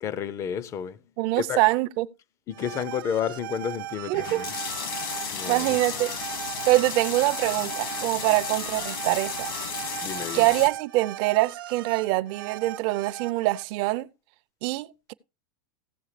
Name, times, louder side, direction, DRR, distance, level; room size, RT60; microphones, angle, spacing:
voice 1, 0.0-1.0 1.4-1.6 2.5-4.5 5.3-5.8 10.0-10.5, left 8 dB, 25° left, 0.5 m, -31 dB
voice 2, 1.2-2.1 4.1-4.4 5.5-6.1 6.7-9.6 10.3-14.1 14.6-15.1, right 19 dB, 45° right, 0.5 m, -24 dB
sound 1, 2.5-13.6, right 14 dB, 75° right, 0.8 m, -38 dB
sound 2, 4.1-10.7, left 6 dB, 80° left, 2.2 m, -33 dB
15.5 x 7.1 x 3.2 m
supercardioid pair, 145°, 12 cm